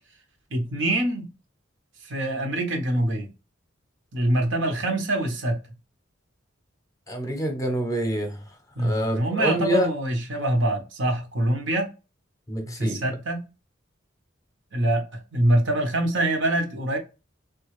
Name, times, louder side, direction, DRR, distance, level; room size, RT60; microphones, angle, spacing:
voice 1, 0.5-1.3 2.0-3.3 4.1-5.6 8.8-11.9 12.8-13.5 14.7-17.0, right 1 dB, 75° right, 0.8 m, -24 dB
voice 2, 7.1-9.9 12.5-13.0, right 1 dB, 15° left, 0.7 m, -27 dB
3.4 x 2.3 x 3.1 m
head